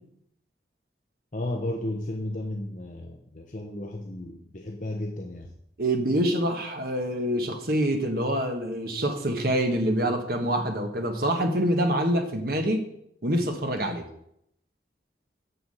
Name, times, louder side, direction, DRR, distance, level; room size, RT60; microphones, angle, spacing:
voice 1, 1.3-5.5, left 1 dB, 45° left, 1 dB, 0.9 m, -33 dB
voice 2, 5.8-12.9 13.2-14.1, right 1 dB, 55° right, 4 dB, 1.4 m, -26 dB
6.9 x 6.2 x 7.6 m, 0.73 s
head